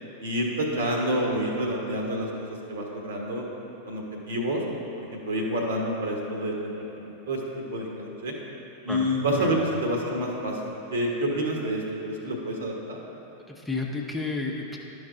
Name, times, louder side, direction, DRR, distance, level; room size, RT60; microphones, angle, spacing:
voice 1, 0.2-3.4 3.9-4.6 5.0-7.4 7.7-8.3 8.8-10.6 10.9-13.0, equal, 65° right, 0 dB, 1.3 m, -28 dB
voice 2, 13.5-14.8, left 3 dB, 5° left, -1 dB, 0.8 m, -31 dB
12.0 x 5.3 x 3.8 m, 3.0 s
figure-of-eight pair, 90°, 0 cm